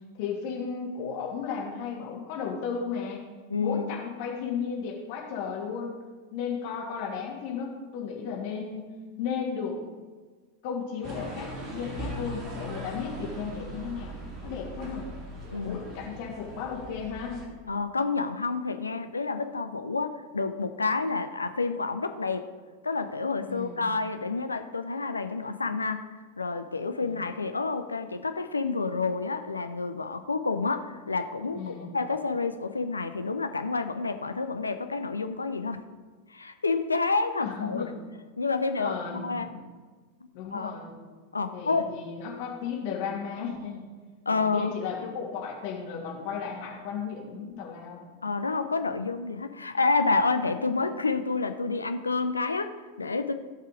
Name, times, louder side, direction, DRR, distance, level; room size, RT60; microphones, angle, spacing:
voice 1, 0.2-3.2 3.6-6.0 6.3-8.9 9.2-9.8 10.6-14.1 14.4-15.1 15.6-17.4 23.5-23.8 27.0-27.2 31.5-31.9 37.4-37.9 38.8-39.6 40.3-40.9 41.5-43.8 44.3-48.0, left 6 dB, 45° left, -1 dB, 2.7 m, -34 dB
voice 2, 3.5-3.9 15.5-15.8 17.7-22.5 22.8-26.0 26.4-35.8 36.3-37.9 38.4-39.5 40.5-40.7 41.3-41.9 44.3-44.7 48.2-53.3, left 4 dB, 80° left, 8 dB, 0.7 m, -29 dB
sound 1, 11.0-17.5, equal, 35° right, 2.2 m, -39 dB
16.5 x 5.6 x 4.9 m, 1.4 s
figure-of-eight pair, 90°, 0 cm